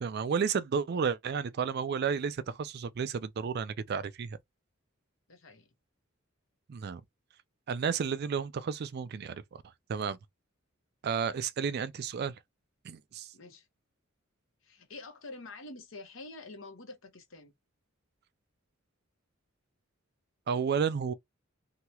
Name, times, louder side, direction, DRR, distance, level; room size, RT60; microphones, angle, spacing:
voice 1, 0.0-4.4 6.7-7.0 7.7-9.6 9.9-10.2 11.0-12.3 12.8-13.3 20.5-21.1, right 6 dB, 50° right, 0.4 m, -32 dB
voice 2, 5.3-5.7 13.3-13.7 14.6-17.5, left 2 dB, 65° left, 0.9 m, -47 dB
2.8 x 2.3 x 2.9 m
head